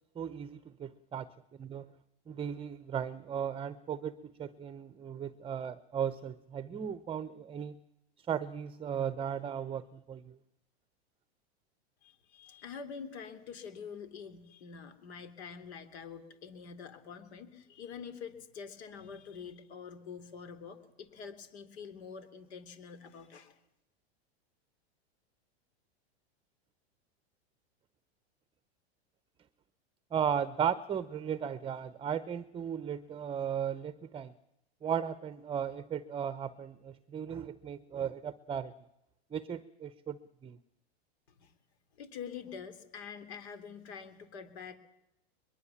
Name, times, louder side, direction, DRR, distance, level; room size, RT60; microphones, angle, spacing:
voice 1, 0.1-1.3 1.6-1.9 2.3-7.8 8.2-10.4 30.1-34.3 34.8-38.7 39.3-40.6, right 8 dB, 15° right, 15 dB, 0.8 m, -36 dB
voice 2, 12.0-23.6 41.3-41.5 41.9-44.8, left 6 dB, 75° left, 10 dB, 3.7 m, -46 dB
22.5 x 22.0 x 7.2 m, 0.86 s
supercardioid pair, 125°, 33 cm